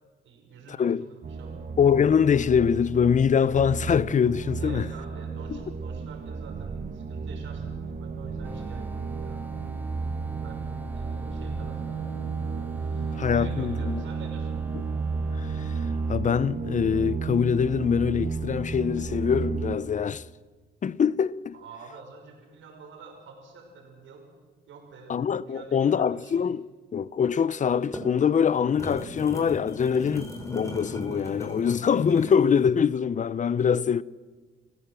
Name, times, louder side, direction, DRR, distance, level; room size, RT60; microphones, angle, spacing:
voice 1, 0.2-1.6 4.6-9.5 10.4-10.7 10.9-12.1 12.7-14.6 21.5-24.2 24.7-25.2 25.4-26.4, right 4 dB, 75° right, 5.9 m, -48 dB
sound 1, 1.2-19.8, right 4 dB, 45° right, 2.0 m, -33 dB
voice 2, 1.8-4.9 5.5-5.6 13.2-14.0 15.4-15.7 16.1-20.3 20.8-21.5 25.1-26.7 26.9-34.0, left 7 dB, 40° left, 0.7 m, -24 dB
sound 2, 8.4-16.1, right 2 dB, 10° right, 1.8 m, -46 dB
sound 3, 27.7-32.5, equal, 15° left, 5.4 m, -38 dB
28.0 x 16.0 x 7.6 m
cardioid pair, 90°, 20 cm